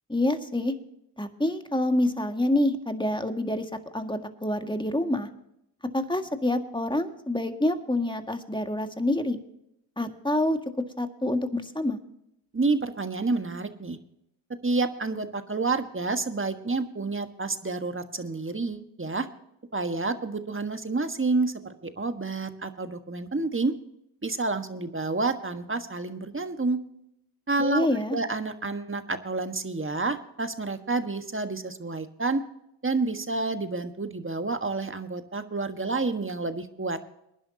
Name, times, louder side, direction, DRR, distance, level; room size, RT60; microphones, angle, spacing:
voice 1, 0.1-0.7 1.2-3.7 3.9-5.3 5.9-9.4 10.0-10.6 11.0-12.0 27.6-28.2, left 1 dB, 10° left, 6 dB, 1.9 m, -27 dB
voice 2, 12.5-14.0 14.6-19.3 19.7-23.7 24.2-26.8 27.5-27.9 28.1-32.4 32.8-37.0, right 3 dB, 25° right, 8 dB, 1.5 m, -29 dB
22.5 x 11.0 x 2.8 m, 0.80 s
cardioid pair, 45°, 46 cm